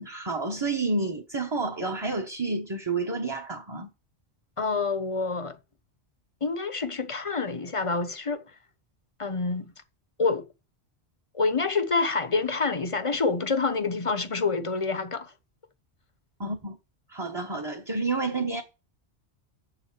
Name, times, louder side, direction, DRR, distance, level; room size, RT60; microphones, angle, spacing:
voice 1, 0.0-3.9 16.4-16.8 17.1-18.6, right 3 dB, 25° right, 1.3 m, -30 dB
voice 2, 4.6-5.6 6.4-8.4 9.2-9.7 10.2-10.5 11.3-15.3, left 4 dB, 30° left, 1.0 m, -27 dB
7.5 x 7.1 x 7.5 m
omnidirectional pair, 1.1 m